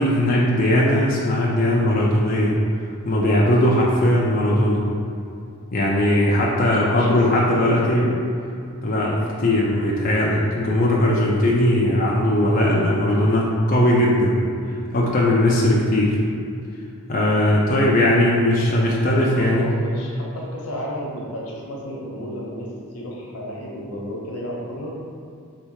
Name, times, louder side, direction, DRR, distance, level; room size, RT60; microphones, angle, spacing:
voice 1, 0.0-2.6 3.1-4.8 5.7-8.0 8.8-14.4 14.7-16.2 17.1-19.7, left 1 dB, 40° left, -4 dB, 0.4 m, -19 dB
voice 2, 6.8-8.2 18.7-22.7 22.9-25.0, equal, 90° left, -3 dB, 0.9 m, -32 dB
3.3 x 3.3 x 4.6 m, 2.5 s
head